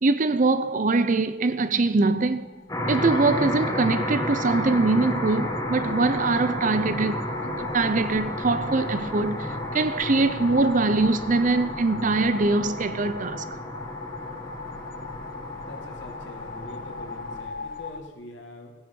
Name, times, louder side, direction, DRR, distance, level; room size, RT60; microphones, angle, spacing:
voice 1, 0.0-2.5 2.9-13.4, right 3 dB, 40° right, 0.6 m, -23 dB
sound 1, 2.2-18.0, left 4 dB, 45° left, 0.6 m, -39 dB
sound 2, 2.7-17.4, equal, 15° left, 1.7 m, -32 dB
voice 2, 15.6-18.8, left 1 dB, 70° left, 1.9 m, -44 dB
15.0 x 9.7 x 5.4 m
head